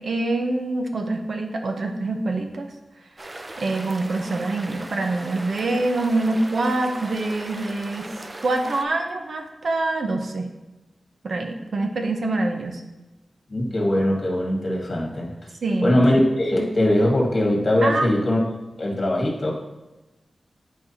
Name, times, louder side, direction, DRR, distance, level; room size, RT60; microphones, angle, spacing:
voice 1, 0.0-2.7 3.6-8.1 8.4-10.5 11.2-12.8 15.6-16.0 17.8-18.1, right 2 dB, 70° right, 4 dB, 0.8 m, -25 dB
sound 1, 3.2-8.8, right 2 dB, 30° right, 0.5 m, -38 dB
voice 2, 13.5-15.3 15.8-19.5, left 1 dB, 45° left, -1 dB, 1.7 m, -21 dB
10.0 x 4.7 x 2.9 m, 1.1 s
wide cardioid pair, 115°, 0 cm